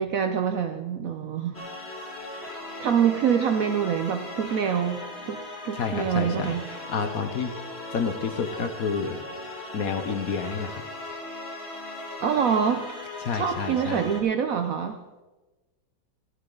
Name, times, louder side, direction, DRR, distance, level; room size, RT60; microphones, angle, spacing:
voice 1, 0.0-1.6 2.4-2.5 2.8-6.6 12.2-12.8 13.3-15.0, right 7 dB, 70° right, 7 dB, 0.8 m, -25 dB
sound 1, 1.5-14.2, left 2 dB, 35° left, 1.8 m, -38 dB
voice 2, 5.7-6.5 6.9-7.5 7.9-9.2 9.7-10.8 13.2-14.0, left 5 dB, 60° left, 7 dB, 1.2 m, -29 dB
14.0 x 11.0 x 3.8 m, 1.2 s
omnidirectional pair, 2.0 m